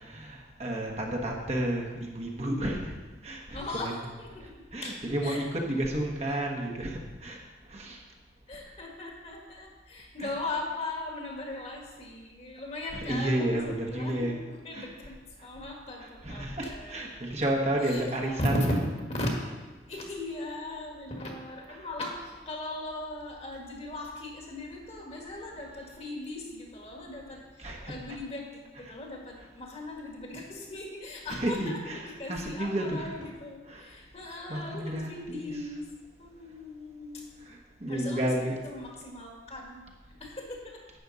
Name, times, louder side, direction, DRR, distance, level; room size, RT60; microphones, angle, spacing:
voice 1, 0.0-2.9 3.2-4.0 4.7-7.4 7.7-8.0 10.2-10.4 12.9-14.4 14.7-14.9 16.0-18.9 21.7-21.8 27.6-28.2 28.7-28.9 31.3-33.1 33.7-33.9 34.5-35.6 37.5-38.6, right 1 dB, 40° right, 0 dB, 1.3 m, -32 dB
voice 2, 3.5-4.5 4.8-5.4 6.3-6.4 8.5-17.4 17.8-18.1 18.4-19.5 19.9-35.9 36.2-37.3 37.9-38.3 38.6-39.9 40.2-40.8, left 1 dB, 35° left, 0 dB, 1.7 m, -38 dB
11.0 x 8.2 x 4.1 m, 1.3 s
head